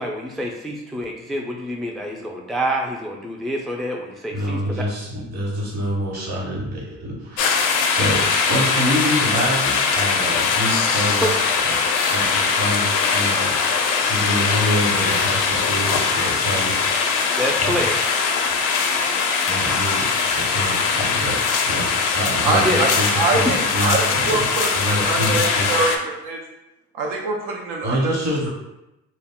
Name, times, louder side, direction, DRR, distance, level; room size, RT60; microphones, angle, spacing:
voice 1, 0.0-4.9 17.4-18.2 22.6-22.9, equal, ahead, 0 dB, 0.3 m, -27 dB
voice 2, 4.3-11.8 12.1-13.6 14.0-16.9 17.6-17.8 19.5-20.1 20.3-21.4 21.7-24.5 24.7-25.7 27.8-28.5, equal, 55° right, -3 dB, 1.1 m, -26 dB
sound 1, 7.4-26.0, left 5 dB, 75° left, 0.4 m, -21 dB
voice 3, 22.4-25.4 25.7-26.4 27.0-28.1, right 3 dB, 80° right, 0 dB, 0.5 m, -24 dB
2.2 x 2.0 x 3.5 m, 0.92 s
supercardioid pair, 70°, 32 cm